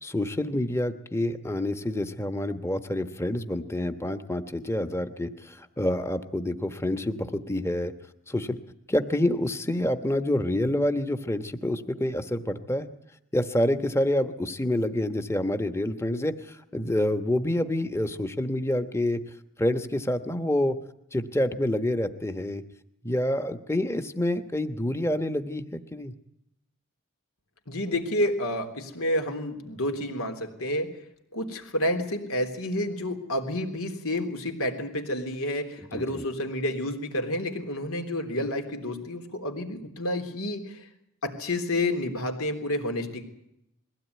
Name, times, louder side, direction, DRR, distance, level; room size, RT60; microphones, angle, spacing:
voice 1, 0.0-7.9 8.3-8.6 8.9-12.9 13.3-19.2 19.6-20.8 21.1-22.6 23.0-26.1 35.9-36.2, left 1 dB, 10° left, 9 dB, 1.1 m, -27 dB
voice 2, 27.7-30.9 31.3-40.8 41.2-43.2, left 1 dB, 85° left, 4 dB, 3.5 m, -29 dB
22.0 x 16.5 x 9.4 m, 0.81 s
head